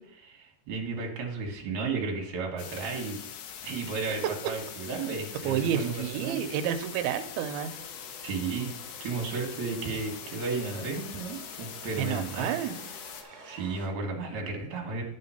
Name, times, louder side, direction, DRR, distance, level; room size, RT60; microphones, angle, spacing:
voice 1, 0.0-3.2 3.6-6.6 8.2-8.7 9.0-12.5 13.4-15.0, right 4 dB, 60° right, 0 dB, 2.3 m, -33 dB
sound 1, 2.6-13.2, left 8 dB, 80° left, 2.2 m, -43 dB
voice 2, 5.4-7.7 12.0-12.8 13.3-13.5, right 9 dB, 80° right, 7 dB, 2.4 m, -30 dB
sound 2, 7.2-13.9, right 1 dB, 40° right, 1.7 m, -50 dB
10.5 x 3.7 x 5.6 m, 0.76 s
omnidirectional pair, 4.9 m